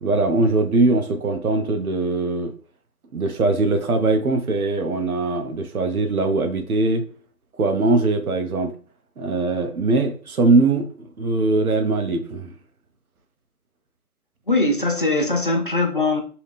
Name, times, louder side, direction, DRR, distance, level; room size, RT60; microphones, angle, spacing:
voice 1, 0.0-2.5 3.1-7.0 7.6-8.7 9.2-12.5, right 2 dB, 70° right, 7 dB, 0.9 m, -21 dB
voice 2, 14.5-16.2, left 2 dB, 40° left, 3 dB, 0.4 m, -21 dB
2.8 x 2.8 x 3.4 m, 0.41 s
figure-of-eight pair, 155°, 45 cm